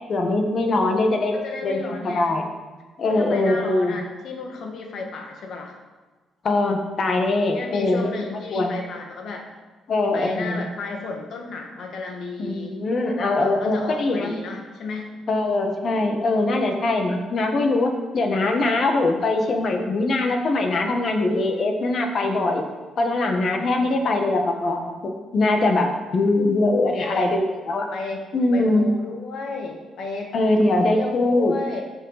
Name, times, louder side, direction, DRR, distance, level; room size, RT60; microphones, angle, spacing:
voice 1, 0.1-1.3 1.6-2.5 3.0-4.0 6.4-8.1 8.5-8.8 9.9-10.7 12.4-14.3 15.3-22.6 23.0-27.9 28.3-28.8 30.3-31.5, left 2 dB, 50° left, 4 dB, 1.5 m, -22 dB
voice 2, 1.3-2.3 3.0-5.8 7.5-9.5 10.1-12.8 13.4-15.1 26.9-27.3 27.9-28.3 28.5-30.4 30.8-31.8, left 3 dB, 65° left, 2 dB, 1.7 m, -33 dB
14.0 x 5.4 x 4.1 m, 1.3 s
cardioid pair, 90°, 0 cm